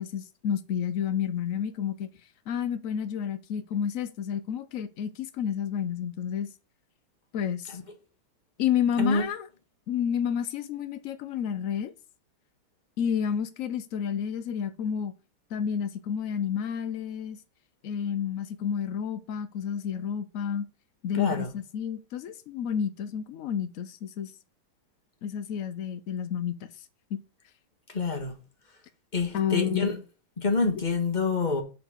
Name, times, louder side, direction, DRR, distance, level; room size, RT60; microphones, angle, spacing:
voice 1, 0.0-2.1 2.5-6.5 7.3-7.8 8.6-9.5 9.9-11.9 13.0-15.1 15.5-17.4 17.8-20.7 21.0-24.3 25.2-27.2 29.3-30.0 30.6-30.7, left 8 dB, 90° left, 0.7 m, -30 dB
voice 2, 21.2-21.5 27.9-28.3 29.1-29.9 30.4-31.6, left 4 dB, 25° left, 1.6 m, -26 dB
8.0 x 4.2 x 6.5 m
omnidirectional pair, 2.2 m